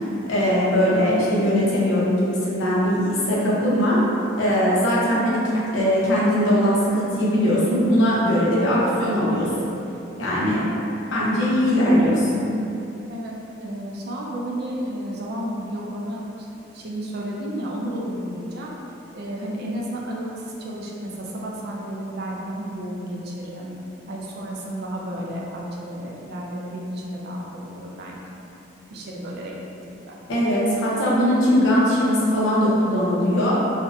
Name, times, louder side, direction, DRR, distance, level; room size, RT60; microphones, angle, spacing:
voice 1, 0.3-4.0 4.4-9.5 10.2-10.6 11.1-12.5 30.3-33.5, equal, 90° left, -7 dB, 0.6 m, -20 dB
voice 2, 10.4-10.7 13.1-16.5 16.7-18.7 19.1-23.7 24.1-28.4 28.9-29.5 29.8-30.2, equal, 55° right, -3 dB, 0.4 m, -32 dB
2.5 x 2.1 x 2.4 m, 2.8 s
head